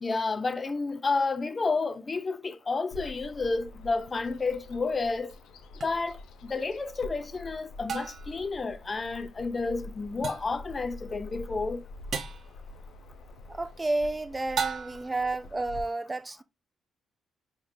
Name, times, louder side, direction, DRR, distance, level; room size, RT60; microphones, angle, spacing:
voice 1, 0.0-5.3 5.8-11.8, left 3 dB, 35° left, 0.6 m, -30 dB
Bird vocalization bird call bird song, 2.9-15.8, left 2 dB, 75° left, 0.7 m, -46 dB
sound 1, 5.8-5.9 7.9-8.4 10.2-10.6 12.1-12.5 14.6-15.2, right 6 dB, 60° right, 0.7 m, -34 dB
voice 2, 13.5-16.4, right 2 dB, 25° right, 0.4 m, -31 dB
4.6 x 3.7 x 2.6 m
supercardioid pair, 55°, 0 cm